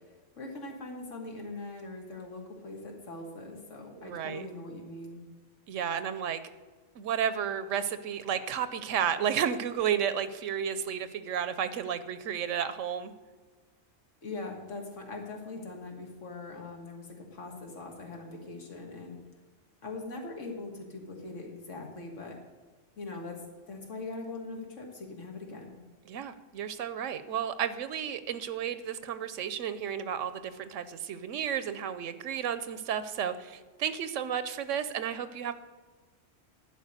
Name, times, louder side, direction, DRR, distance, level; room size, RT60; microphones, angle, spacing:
voice 1, 0.4-5.2 14.2-19.2 19.8-22.4 23.0-23.3 23.7-25.8, left 3 dB, 75° left, 1 dB, 2.0 m, -41 dB
voice 2, 4.0-4.5 5.7-6.4 7.0-13.1 26.1-35.5, right 8 dB, 80° right, 12 dB, 1.0 m, -32 dB
11.0 x 4.8 x 8.0 m, 1.4 s
omnidirectional pair, 1.3 m